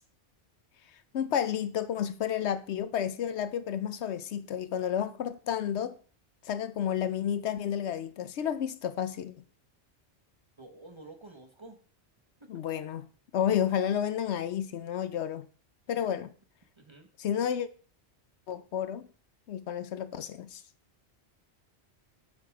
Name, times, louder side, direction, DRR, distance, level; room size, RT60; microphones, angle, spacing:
voice 1, 1.1-5.9 6.4-9.3 12.5-13.1 13.3-15.4 15.9-16.3 17.2-17.7 18.5-19.1 19.5-20.6, left 9 dB, 75° left, 0.9 m, -31 dB
voice 2, 10.6-11.8 12.4-12.5 15.9-16.1 16.8-17.1, right 2 dB, 25° right, 1.3 m, -50 dB
8.5 x 5.8 x 4.8 m
omnidirectional pair, 1.2 m